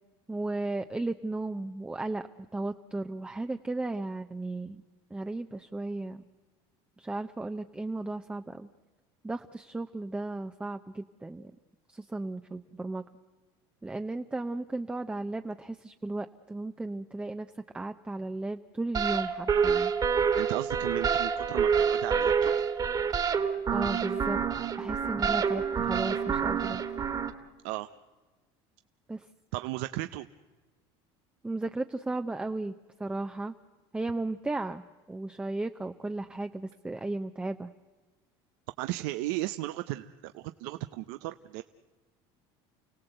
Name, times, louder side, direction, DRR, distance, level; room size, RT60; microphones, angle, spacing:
voice 1, 0.3-2.3 2.5-4.8 5.1-6.2 7.0-8.7 9.2-11.5 11.9-13.0 13.8-19.9 23.7-24.4 24.8-26.8 29.1-29.2 31.4-33.5 33.9-37.7, right 2 dB, 10° right, 7 dB, 0.7 m, -35 dB
sound 1, 18.9-27.3, right 6 dB, 30° right, 1.8 m, -27 dB
voice 2, 20.4-22.5 27.6-27.9 29.5-30.3 38.8-41.6, right 17 dB, 75° right, 10 dB, 0.7 m, -35 dB
29.5 x 17.0 x 7.9 m, 1.3 s
supercardioid pair, 115°, 13 cm